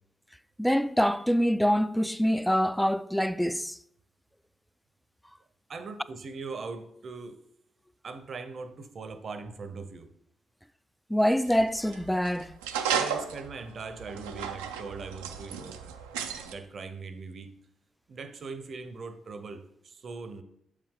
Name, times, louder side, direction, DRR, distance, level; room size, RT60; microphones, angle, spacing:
voice 1, 0.6-3.8 11.1-12.6, equal, 5° left, 0.3 m, -25 dB
voice 2, 5.7-7.4 8.0-10.1 12.9-16.0 16.4-17.5 18.1-20.4, right 4 dB, 55° right, 0.7 m, -40 dB
sound 1, 11.5-16.5, right 7 dB, 90° right, 0.4 m, -34 dB
7.0 x 4.9 x 3.7 m
hypercardioid pair, 45°, 0 cm